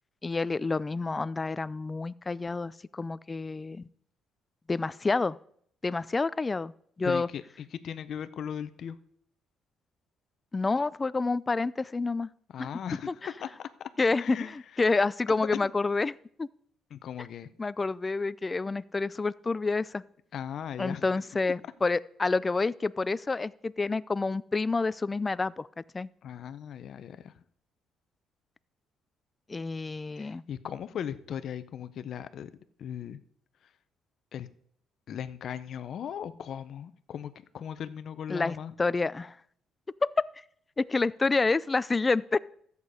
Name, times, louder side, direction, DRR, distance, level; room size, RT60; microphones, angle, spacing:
voice 1, 0.2-3.9 4.7-5.4 5.8-6.7 7.0-7.3 10.5-12.3 12.6-12.7 13.1-13.2 14.0-14.4 14.8-16.5 17.6-20.0 20.8-26.1 29.5-30.4 38.3-39.4 40.2-40.3 40.8-42.4, left 3 dB, 20° left, 18 dB, 0.3 m, -28 dB
voice 2, 7.0-9.0 12.5-13.7 14.1-14.6 15.4-15.7 16.9-17.5 20.3-21.2 26.2-27.4 30.1-32.5 32.8-33.2 34.3-34.5 35.1-38.7, left 9 dB, 55° left, 13 dB, 0.7 m, -38 dB
13.5 x 8.2 x 4.9 m, 0.65 s
cardioid pair, 125°, 0 cm